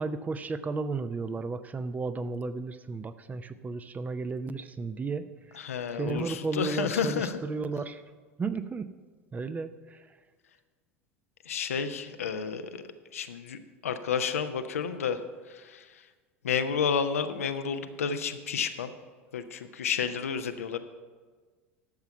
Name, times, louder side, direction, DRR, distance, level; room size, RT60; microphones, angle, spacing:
voice 1, 0.0-5.3 5.9-8.0 8.4-8.9 9.3-10.0, right 4 dB, 20° right, 12 dB, 0.6 m, -33 dB
voice 2, 5.5-7.4 11.5-12.8 13.1-15.2 15.5-15.9 16.4-18.9 19.3-20.8, left 6 dB, 75° left, 9 dB, 0.7 m, -31 dB
12.0 x 6.9 x 5.5 m, 1.4 s
figure-of-eight pair, 75°, 8 cm